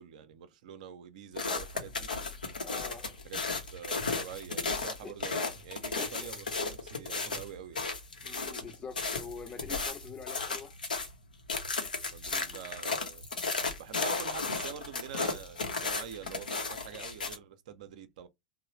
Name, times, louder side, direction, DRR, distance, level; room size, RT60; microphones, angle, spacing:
voice 1, 0.0-2.1 3.2-3.4 3.7-7.9 12.1-13.2 13.8-18.3, right 9 dB, 60° right, 0.5 m, -46 dB
sound 1, 1.4-11.1 11.5-17.4, left 4 dB, 80° left, 0.7 m, -34 dB
voice 2, 2.6-3.1 5.0-5.1 6.0-6.3 8.2-10.7, left 5 dB, 25° left, 0.7 m, -44 dB
3.0 x 2.0 x 3.0 m
figure-of-eight pair, 90°, 5 cm